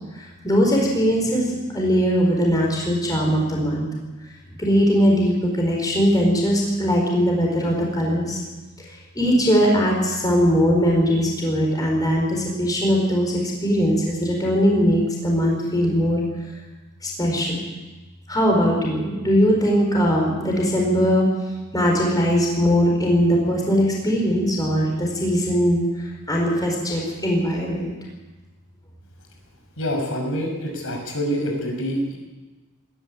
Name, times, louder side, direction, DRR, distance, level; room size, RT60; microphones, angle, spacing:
voice 1, 0.1-3.9 4.6-8.4 8.9-16.2 17.0-17.6 18.3-21.2 21.7-27.9, equal, 20° left, -1 dB, 4.5 m, -20 dB
voice 2, 29.8-32.2, equal, 65° left, 1 dB, 6.3 m, -26 dB
20.0 x 13.5 x 9.9 m, 1.2 s
head